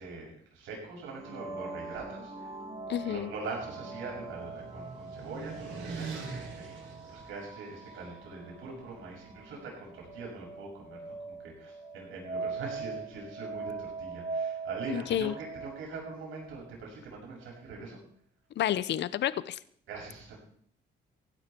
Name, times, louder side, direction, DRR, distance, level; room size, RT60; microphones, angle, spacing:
voice 1, 0.0-2.5 3.0-18.0 19.9-20.4, right 4 dB, 90° right, -2 dB, 6.8 m, -43 dB
sound 1, 1.1-16.7, right 4 dB, 30° right, 3.9 m, -42 dB
sound 2, 2.8-8.0, right 4 dB, 70° right, 5.9 m, -43 dB
voice 2, 2.9-3.3 14.9-15.3 18.6-19.6, left 11 dB, 65° left, 17 dB, 0.7 m, -30 dB
16.0 x 12.5 x 4.5 m, 0.64 s
cardioid pair, 90°, 20 cm